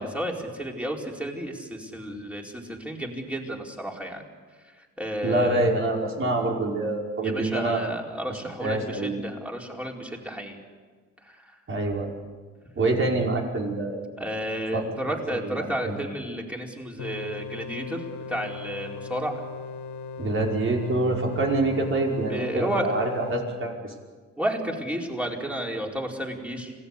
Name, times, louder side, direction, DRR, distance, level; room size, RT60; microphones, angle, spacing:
voice 1, 0.0-4.3 5.0-5.7 7.2-10.6 11.2-11.5 14.2-19.3 22.3-23.1 24.4-26.7, right 1 dB, 5° right, 0 dB, 4.6 m, -32 dB
voice 2, 5.2-7.9 8.6-9.1 11.7-12.1 12.8-14.0 14.7-15.2 15.4-16.0 20.2-23.9, right 2 dB, 45° right, 0 dB, 5.6 m, -26 dB
sound 1, 17.0-23.3, left 5 dB, 70° left, 1.8 m, -38 dB
26.5 x 18.0 x 8.4 m, 1.5 s
cardioid pair, 90°, 30 cm